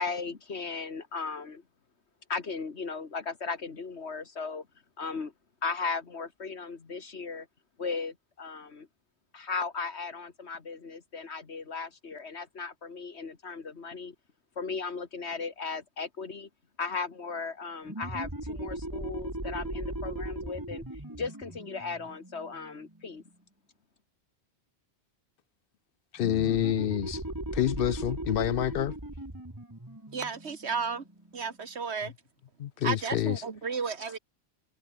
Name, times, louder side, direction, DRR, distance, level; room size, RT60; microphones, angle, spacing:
voice 1, 0.0-1.6 2.3-4.7 5.0-5.3 5.6-7.5 7.8-8.9 9.3-14.2 14.6-16.5 16.8-20.8 21.1-23.2, left 4 dB, 80° left, 2.2 m, -36 dB
sound 1, 17.8-23.2 26.2-31.5, right 1 dB, 20° right, 2.5 m, -38 dB
voice 2, 26.1-27.2 27.5-28.9 32.6-33.4, left 11 dB, 65° left, 0.7 m, -28 dB
voice 3, 30.1-31.0 31.3-32.1 32.8-34.2, right 5 dB, 85° right, 1.9 m, -33 dB
omnidirectional pair, 1.1 m